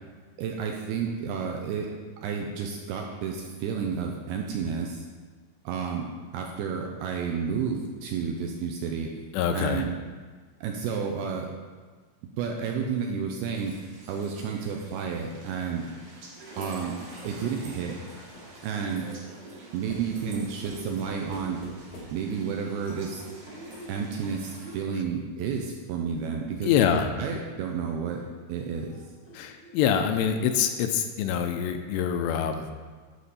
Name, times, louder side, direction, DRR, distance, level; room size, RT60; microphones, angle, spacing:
voice 1, 0.4-1.9 2.2-5.1 5.7-6.1 6.3-9.2 9.5-9.9 10.6-11.5 12.4-13.8 14.1-15.9 16.6-17.0 17.2-18.0 18.6-19.1 19.7-21.6 22.1-23.2 23.9-26.7 27.2-29.0, right 6 dB, 85° right, 2 dB, 2.4 m, -31 dB
voice 2, 9.3-9.8 26.6-27.1 29.3-32.7, left 8 dB, 85° left, 6 dB, 2.7 m, -25 dB
sound 1, 13.6-24.8, right 1 dB, 55° right, 2.7 m, -45 dB
sound 2, 15.2-18.6 19.9-22.4 22.9-24.8 26.9-30.8, left 1 dB, 60° left, 1.4 m, -49 dB
11.5 x 6.0 x 4.1 m, 1.5 s
omnidirectional pair, 5.1 m